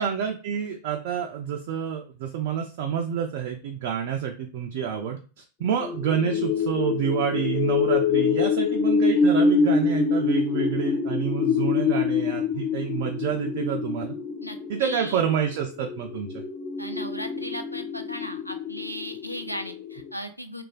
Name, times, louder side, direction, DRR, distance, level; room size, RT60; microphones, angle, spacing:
voice 1, 0.0-14.1 14.7-16.4, right 8 dB, 50° right, 3 dB, 0.3 m, -28 dB
sound 1, 5.8-20.1, left 5 dB, 30° left, 0.6 m, -26 dB
voice 2, 14.4-15.2 16.8-20.6, equal, 90° left, 6 dB, 0.3 m, -36 dB
3.1 x 2.2 x 2.3 m, 0.35 s
figure-of-eight pair, 90°, 0 cm